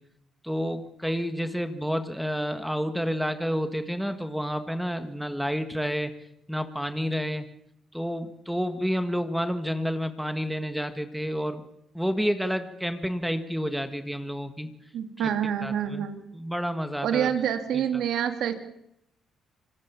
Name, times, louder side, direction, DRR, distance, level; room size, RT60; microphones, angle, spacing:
voice 1, 0.4-6.1 6.5-7.5 7.9-11.6 11.9-14.7 15.2-15.3 15.6-16.1 16.3-17.3 17.7-18.0, equal, ahead, 9 dB, 1.8 m, -29 dB
voice 2, 14.9-16.2 17.0-18.5, right 9 dB, 80° right, 7 dB, 2.7 m, -27 dB
26.0 x 19.5 x 7.2 m, 0.78 s
cardioid pair, 90°, 0 cm